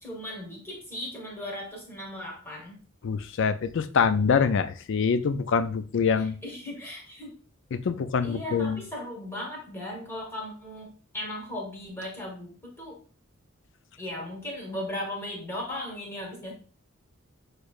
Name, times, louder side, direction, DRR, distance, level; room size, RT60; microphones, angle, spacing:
voice 1, 0.0-2.8 6.2-7.4 8.2-13.0 14.0-16.5, left 1 dB, 10° left, -2 dB, 1.5 m, -37 dB
voice 2, 3.0-6.4 7.7-8.8, left 6 dB, 60° left, 11 dB, 0.4 m, -25 dB
6.3 x 3.2 x 2.4 m, 0.39 s
head